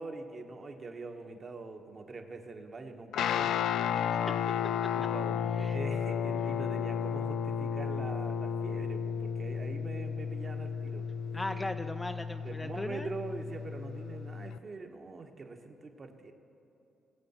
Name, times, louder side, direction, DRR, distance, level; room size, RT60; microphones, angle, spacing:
voice 1, 0.0-3.6 4.9-11.0 12.4-16.3, right 3 dB, 40° right, 4 dB, 1.2 m, -43 dB
Guitar, 3.1-14.6, left 7 dB, 75° left, 0.3 m, -33 dB
voice 2, 3.9-4.3 5.5-5.8 11.3-13.1, left 1 dB, 15° left, 8 dB, 0.4 m, -38 dB
20.5 x 7.6 x 4.3 m, 3.0 s
cardioid pair, 90°, 0 cm